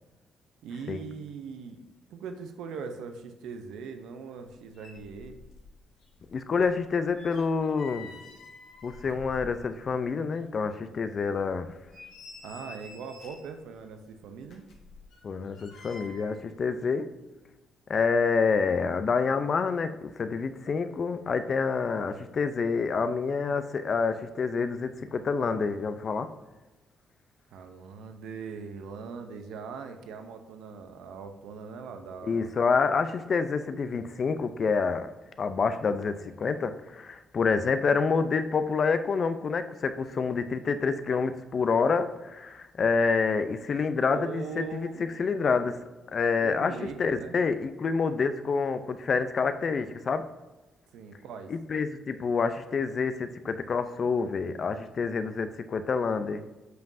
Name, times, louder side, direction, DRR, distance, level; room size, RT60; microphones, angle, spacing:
voice 1, 0.6-1.8 2.1-5.4 12.4-14.6 27.5-32.5 44.1-45.1 46.4-47.4 50.9-51.5, right 5 dB, 85° right, 7 dB, 0.7 m, -41 dB
sound 1, 4.5-4.6 4.7-5.7 6.0-10.0 10.3-10.4 11.0-11.1 11.6-13.6 14.4-16.4 16.7-16.9, left 3 dB, 80° left, 1.5 m, -49 dB
voice 2, 6.3-8.1 8.8-11.7 15.2-17.1 17.9-26.3 32.3-35.1 35.4-44.9 45.2-45.8 46.1-50.3 51.5-56.4, left 5 dB, 45° left, 10 dB, 0.5 m, -27 dB
7.8 x 5.3 x 2.7 m, 1.1 s
cardioid pair, 90°, 0 cm